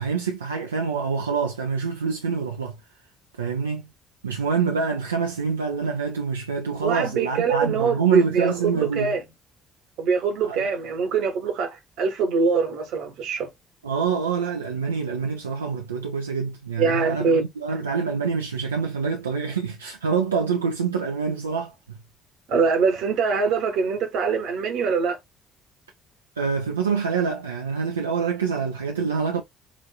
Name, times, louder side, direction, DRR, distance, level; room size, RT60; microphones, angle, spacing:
voice 1, 0.0-2.8 3.4-3.9 4.2-9.2 10.4-10.7 13.8-22.0 26.4-29.4, right 5 dB, 85° right, 0.4 m, -26 dB
voice 2, 6.8-9.2 10.0-13.5 16.8-17.4 22.5-25.2, right 5 dB, 65° right, 1.1 m, -23 dB
5.0 x 2.5 x 2.3 m
hypercardioid pair, 50°, 0 cm